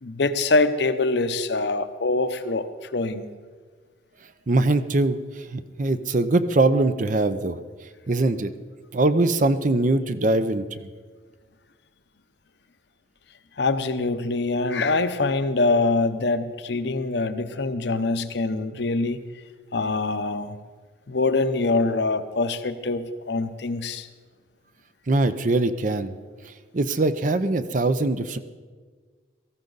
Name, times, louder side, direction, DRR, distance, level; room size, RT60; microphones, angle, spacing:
voice 1, 0.0-3.3 13.6-19.2 19.7-20.6 21.1-24.1, left 3 dB, 60° left, 10 dB, 0.7 m, -24 dB
voice 2, 4.5-7.6 8.1-8.5 8.9-10.9 25.1-26.1 26.7-28.4, right 2 dB, 40° right, 12 dB, 0.6 m, -22 dB
17.5 x 14.0 x 4.0 m, 1.5 s
head